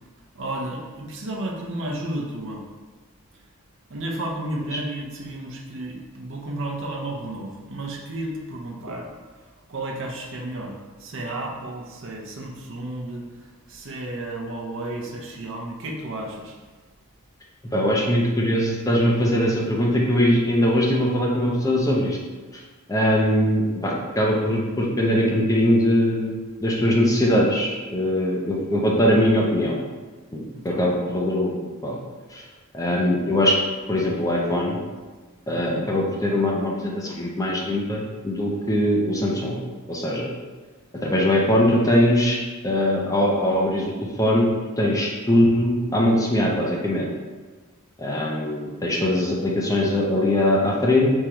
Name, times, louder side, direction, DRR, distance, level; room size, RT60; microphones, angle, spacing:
voice 1, 0.3-2.6 3.3-3.4 3.9-16.6 30.5-30.8 35.5-35.9, right 1 dB, 60° right, 0 dB, 0.7 m, -33 dB
voice 2, 17.7-22.2 22.9-26.3 26.6-29.8 30.3-31.6 31.8-32.0 32.3-32.4 32.7-33.6 33.9-34.8 35.5-39.6 39.9-40.3 40.9-42.4 42.6-43.8 44.2-47.1 48.0-51.1, left 1 dB, 15° left, -2 dB, 0.5 m, -21 dB
4.4 x 3.7 x 2.9 m, 1.3 s
head